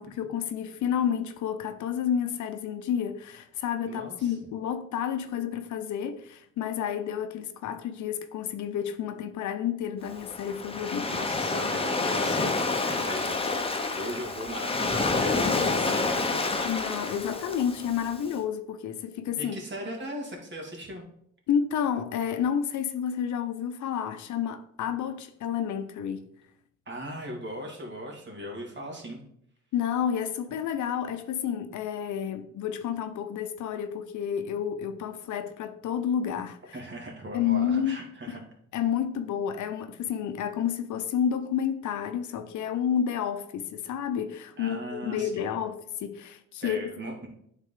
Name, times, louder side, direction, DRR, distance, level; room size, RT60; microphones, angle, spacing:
voice 1, 0.0-11.2 16.6-19.6 21.5-26.3 29.7-36.8 37.3-38.0 38.7-46.9, left 8 dB, 70° left, 0.7 m, -30 dB
voice 2, 3.8-4.3 11.1-16.4 19.4-21.0 26.9-29.2 36.7-38.4 44.6-45.5 46.6-47.3, equal, 35° right, 2.2 m, -39 dB
Waves surf, 10.0-18.3, left 3 dB, 20° left, 0.9 m, -28 dB
9.1 x 3.7 x 3.7 m
cardioid pair, 90°, 30 cm